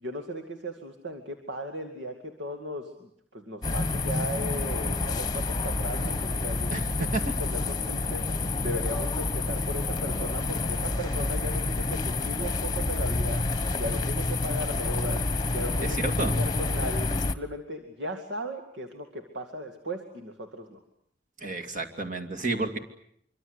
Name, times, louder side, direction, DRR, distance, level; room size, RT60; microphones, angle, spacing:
voice 1, 0.0-8.3 8.6-13.5 13.8-20.8, equal, 80° right, 5 dB, 2.4 m, -37 dB
sound 1, 3.6-17.3, left 2 dB, 25° left, 1.2 m, -28 dB
voice 2, 6.7-7.3 15.8-16.5 21.4-22.8, right 2 dB, 45° right, 3 dB, 2.6 m, -31 dB
25.5 x 24.5 x 8.3 m, 0.68 s
head